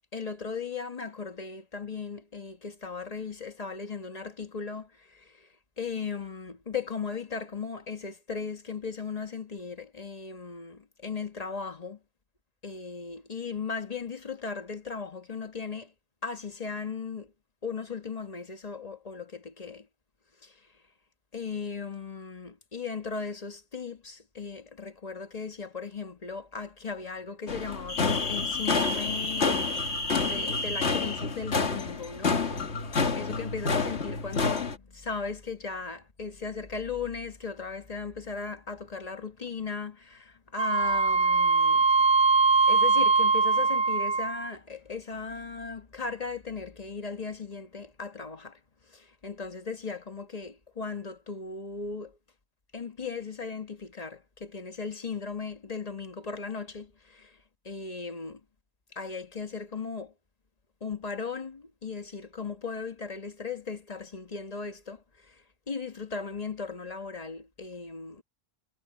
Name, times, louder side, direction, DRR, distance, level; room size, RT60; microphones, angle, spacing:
voice 1, 0.1-12.0 12.6-15.9 16.2-17.3 17.6-19.9 20.4-20.7 21.3-29.9 30.1-41.9 42.7-48.6 48.9-52.2 52.7-58.4 58.9-60.1 60.8-68.2, left 5 dB, 30° left, 1.4 m, -37 dB
sound 1, 27.5-34.8, left 4 dB, 60° left, 1.9 m, -28 dB
Wind instrument woodwind instrument, 40.6-44.5, right 4 dB, 60° right, 1.9 m, -22 dB
omnidirectional pair, 1.3 m